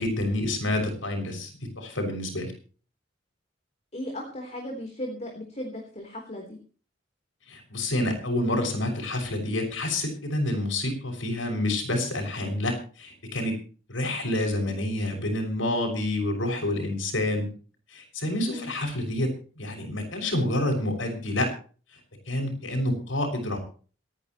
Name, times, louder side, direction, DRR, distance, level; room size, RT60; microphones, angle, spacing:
voice 1, 0.0-1.5 1.8-2.5 7.5-13.6 13.9-17.5 17.9-21.5 22.3-23.6, left 1 dB, 80° left, 3 dB, 6.2 m, -28 dB
voice 2, 3.9-6.6 18.4-18.7, left 1 dB, 35° left, 2 dB, 3.7 m, -36 dB
27.5 x 9.9 x 3.1 m, 0.39 s
head